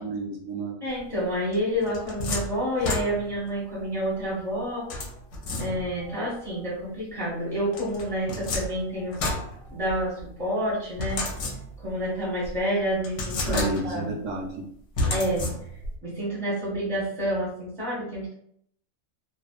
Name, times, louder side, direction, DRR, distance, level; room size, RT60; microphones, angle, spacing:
voice 1, 0.0-0.8 13.4-14.6, right 3 dB, 70° right, -1 dB, 0.9 m, -31 dB
voice 2, 0.8-5.0 5.6-9.3 9.6-11.3 11.8-14.1 15.1-15.5 16.0-18.3, equal, 5° left, -6 dB, 0.6 m, -29 dB
sound 1, 1.5-3.5 4.9-6.1 7.7-10.2 11.0-12.0 12.4-12.5 13.0-14.1 15.0-16.0, left 2 dB, 70° left, 0.9 m, -31 dB
2.5 x 2.3 x 2.3 m, 0.69 s
omnidirectional pair, 1.4 m